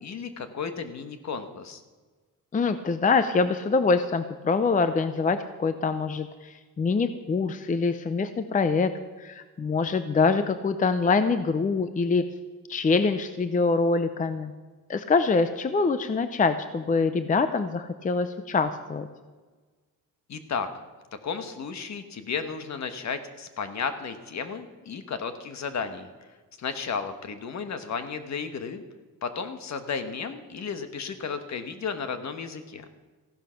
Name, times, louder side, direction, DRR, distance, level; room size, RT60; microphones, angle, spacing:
voice 1, 0.0-1.8 20.3-20.7 21.1-26.1 26.6-28.8 29.2-32.8, left 5 dB, 55° left, 9 dB, 1.3 m, -33 dB
voice 2, 2.5-8.9 9.2-12.2 12.7-14.5 14.9-19.1, left 4 dB, 25° left, 10 dB, 0.6 m, -24 dB
15.0 x 11.0 x 5.8 m, 1.3 s
wide cardioid pair, 145°, 33 cm